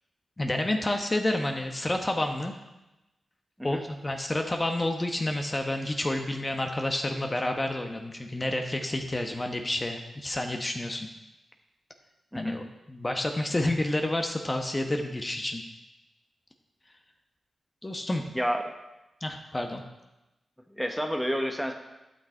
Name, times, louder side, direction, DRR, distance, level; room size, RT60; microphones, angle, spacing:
voice 1, 0.4-2.5 3.6-11.1 12.3-15.6 17.8-18.2 19.2-19.8, left 1 dB, 25° left, 4 dB, 1.1 m, -29 dB
voice 2, 20.8-21.7, equal, ahead, 3 dB, 1.2 m, -29 dB
11.5 x 6.1 x 4.5 m, 0.98 s
cardioid pair, 55°, 0 cm